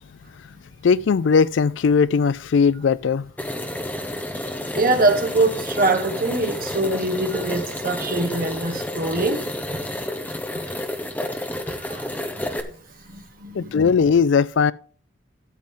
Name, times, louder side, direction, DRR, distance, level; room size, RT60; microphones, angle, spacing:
voice 1, 0.8-3.3 13.5-14.7, left 5 dB, 65° left, 0.4 m, -18 dB
sound 1, 3.4-12.6, left 1 dB, 10° left, 0.9 m, -30 dB
voice 2, 4.7-9.4 10.5-10.6 11.8-12.5 13.0-13.7, right 2 dB, 45° right, 1.5 m, -23 dB
13.0 x 7.5 x 3.7 m
head